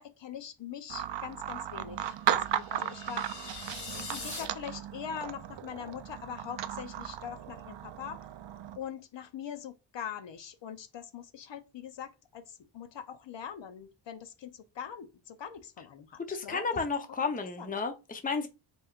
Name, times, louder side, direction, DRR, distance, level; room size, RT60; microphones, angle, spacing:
voice 1, 0.0-3.3 3.8-8.3 8.8-16.7 17.2-17.3 17.6-17.7, left 8 dB, 65° left, 0.8 m, -43 dB
sound 1, 0.9-8.8, right 10 dB, 65° right, 0.6 m, -36 dB
sound 2, 2.4-4.4, left 4 dB, 35° left, 1.5 m, -42 dB
voice 2, 16.3-18.5, left 4 dB, 20° left, 0.7 m, -32 dB
5.3 x 3.1 x 2.4 m
wide cardioid pair, 130°, 48 cm